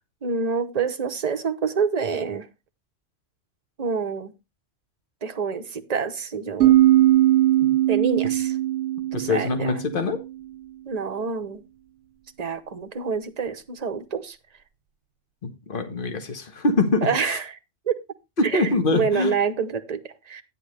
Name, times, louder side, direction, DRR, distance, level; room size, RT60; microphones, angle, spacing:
voice 1, 0.2-2.5 3.8-4.4 5.2-6.8 7.9-8.6 9.1-9.8 10.9-11.6 12.4-14.4 17.0-17.6 17.9-18.0 18.4-20.4, right 5 dB, 35° right, 7 dB, 0.9 m, -27 dB
sound 1, 6.6-10.2, right 14 dB, 70° right, 1.0 m, -20 dB
voice 2, 9.1-10.2 15.4-17.4 18.4-19.3, left 3 dB, 45° left, 7 dB, 1.6 m, -24 dB
9.9 x 9.6 x 3.3 m, 0.26 s
omnidirectional pair, 1.3 m